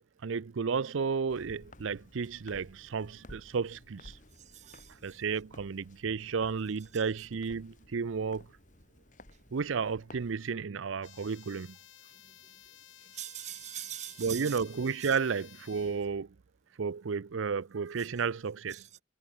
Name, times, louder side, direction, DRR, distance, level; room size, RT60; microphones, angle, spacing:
voice 1, 0.2-4.2 5.0-8.5 9.5-11.8 14.2-16.3 16.8-18.8, right 5 dB, 75° right, 0.5 m, -32 dB
Walk footsteps, 1.3-10.3, left 1 dB, 40° left, 4.3 m, -55 dB
voice 2, 4.4-5.2 12.2-12.3 13.1-14.6 15.0-15.1 18.7-18.8, right 12 dB, 35° right, 0.7 m, -42 dB
sound 1, 11.0-16.1, left 12 dB, 70° left, 1.6 m, -55 dB
head